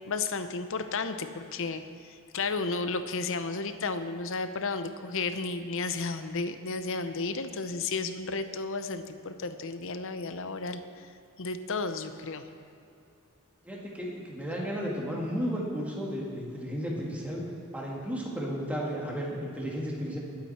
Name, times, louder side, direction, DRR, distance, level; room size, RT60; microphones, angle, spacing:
voice 1, 0.1-11.1 11.4-12.5, left 4 dB, 60° left, 10 dB, 0.8 m, -33 dB
voice 2, 13.6-17.4 17.7-20.2, equal, 5° right, -4 dB, 2.3 m, -33 dB
20.5 x 8.8 x 4.3 m, 2.7 s
head